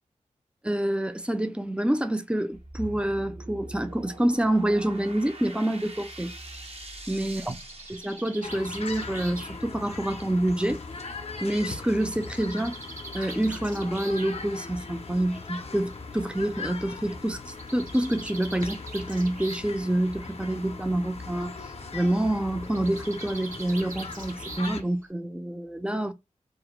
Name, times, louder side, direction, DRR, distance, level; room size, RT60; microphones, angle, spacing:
voice 1, 0.6-6.3 7.1-7.5 8.0-10.8 11.4-12.8 13.1-21.5 21.9-26.1, right 1 dB, 10° right, 0.4 m, -27 dB
sound 1, 2.5-8.8, right 1 dB, 50° right, 0.7 m, -43 dB
Bird, 7.1-10.9 12.0-14.4 15.4-15.5 15.9-16.0 16.2-16.3 17.4-19.8 20.1-20.5 22.6-25.1, right 3 dB, 80° right, 0.8 m, -44 dB
sound 2, 8.4-24.8, left 4 dB, 50° left, 0.5 m, -39 dB
2.4 x 2.1 x 2.9 m
cardioid pair, 50°, 14 cm